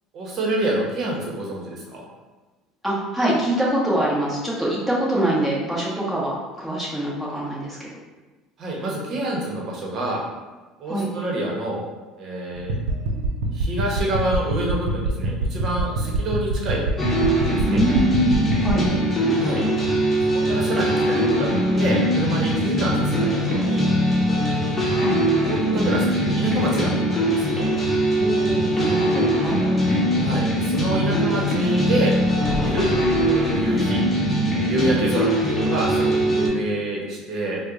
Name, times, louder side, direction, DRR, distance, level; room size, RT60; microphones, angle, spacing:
voice 1, 0.1-2.0 8.6-10.2 10.8-11.8 12.2-12.7 13.5-16.8 17.2-17.8 19.4-19.6 20.3-21.5 21.7-23.8 25.4-27.7 30.2-32.1 32.6-34.0 34.5-37.6, right 1 dB, 50° right, -2 dB, 0.9 m, -27 dB
voice 2, 2.8-7.9 10.9-11.1 17.7-18.9 19.2-19.7 25.0-25.2 28.2-29.7, right 1 dB, 5° right, -6 dB, 1.1 m, -24 dB
sound 1, 12.6-18.9, right 2 dB, 85° right, 0.5 m, -26 dB
sound 2, 17.0-36.5, equal, 20° left, 0.9 m, -21 dB
Thunder, 32.1-34.3, left 3 dB, 35° left, 0.4 m, -33 dB
4.3 x 2.1 x 2.5 m, 1.2 s
supercardioid pair, 95°, 0 cm